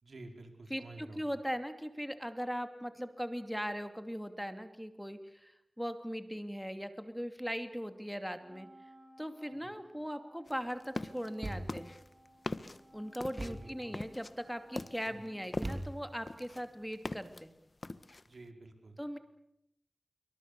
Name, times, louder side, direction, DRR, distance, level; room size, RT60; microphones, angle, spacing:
voice 1, 0.0-1.3 9.5-9.7 13.4-14.0 15.0-15.2 18.2-19.0, right 2 dB, 80° right, 5 dB, 4.8 m, -51 dB
voice 2, 0.7-8.7 9.2-11.9 12.9-17.5 19.0-19.2, equal, ahead, 8 dB, 2.7 m, -39 dB
Wind instrument woodwind instrument, 8.4-16.0, right 1 dB, 25° right, 7.5 m, -60 dB
sound 1, 10.5-11.3 11.7-15.9 16.3-17.4 17.8-18.3, left 2 dB, 50° left, 1.4 m, -41 dB
Thump thud, 11.4-12.0 13.4-13.8 15.6-16.3, right 1 dB, 45° right, 2.9 m, -41 dB
27.0 x 24.0 x 6.9 m, 0.79 s
cardioid pair, 45°, 0 cm